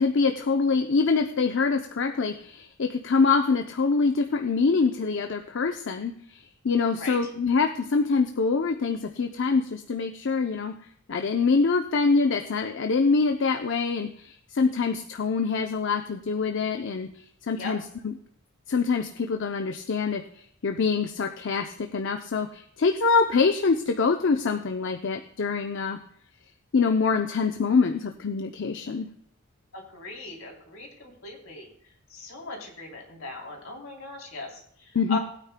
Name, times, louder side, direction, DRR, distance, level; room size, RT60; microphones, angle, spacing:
voice 1, 0.0-10.7 11.1-17.1 17.5-18.1 18.7-26.0 26.7-29.1 34.9-35.2, left 4 dB, 60° left, 5 dB, 0.6 m, -25 dB
voice 2, 29.7-31.7 32.1-35.2, left 3 dB, 80° left, -1 dB, 3.3 m, -38 dB
19.5 x 9.2 x 2.2 m, 0.66 s
head